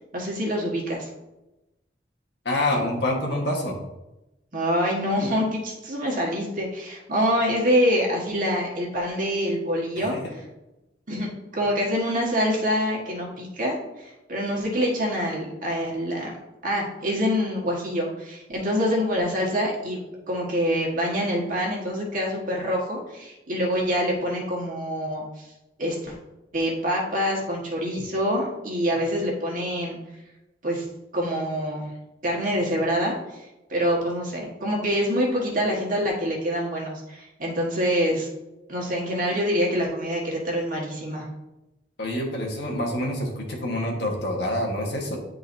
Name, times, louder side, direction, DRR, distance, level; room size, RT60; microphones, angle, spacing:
voice 1, 0.1-1.1 4.5-10.2 11.1-16.4 16.6-25.5 25.8-26.2 26.5-30.0 30.6-30.8 31.1-31.9 32.2-33.4 33.7-38.3 38.7-41.2, equal, 50° right, -2 dB, 1.6 m, -26 dB
voice 2, 2.4-3.8 10.0-10.2 42.0-45.2, left 1 dB, 70° left, 0 dB, 1.5 m, -27 dB
10.5 x 4.0 x 2.7 m, 0.99 s
head